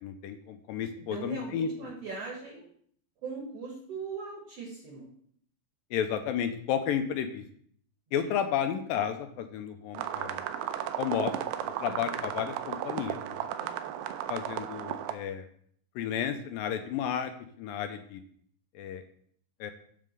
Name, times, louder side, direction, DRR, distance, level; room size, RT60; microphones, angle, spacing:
voice 1, 0.0-1.9 5.9-7.4 8.1-10.4 11.0-11.3 11.8-13.5 14.3-15.5 16.0-17.3 17.6-18.2 18.8-19.0 19.6-19.7, left 8 dB, 80° left, 8 dB, 2.3 m, -32 dB
voice 2, 1.1-2.7 3.2-5.1 8.2-8.3 11.8-12.2 13.6-14.0, right 4 dB, 60° right, -1 dB, 1.7 m, -40 dB
sound 1, 9.9-15.1, right 11 dB, 80° right, 2.0 m, -34 dB
7.5 x 3.7 x 6.2 m, 0.63 s
omnidirectional pair, 4.2 m